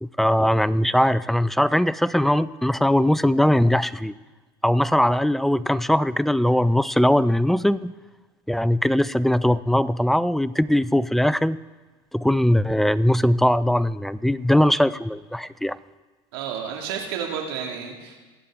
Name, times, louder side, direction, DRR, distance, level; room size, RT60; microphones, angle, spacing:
voice 1, 0.0-4.1 4.6-7.9 8.5-11.6 12.1-15.8, left 1 dB, ahead, 18 dB, 0.3 m, -20 dB
voice 2, 16.3-18.2, right 7 dB, 75° right, 1 dB, 2.4 m, -31 dB
22.5 x 8.3 x 3.7 m, 1.3 s
hypercardioid pair, 95°, 13 cm